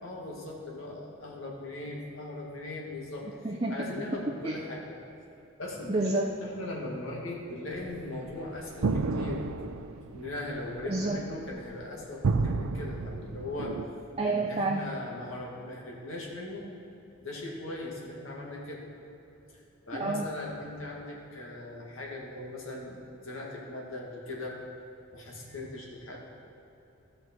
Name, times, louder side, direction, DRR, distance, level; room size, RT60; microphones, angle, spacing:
voice 1, 0.0-3.3 3.7-5.0 5.6-9.4 10.0-13.7 14.2-16.7 17.2-18.9 19.5-24.6 25.1-26.2, left 2 dB, 70° left, -3 dB, 2.0 m, -39 dB
voice 2, 3.4-3.8 4.4-4.6 5.9-6.3 10.8-11.2 14.1-14.8 19.9-20.3, right 2 dB, 30° right, -1 dB, 0.5 m, -29 dB
sound 1, 7.7-13.8, right 3 dB, 85° right, 0.5 m, -31 dB
13.5 x 6.6 x 4.5 m, 3.0 s
head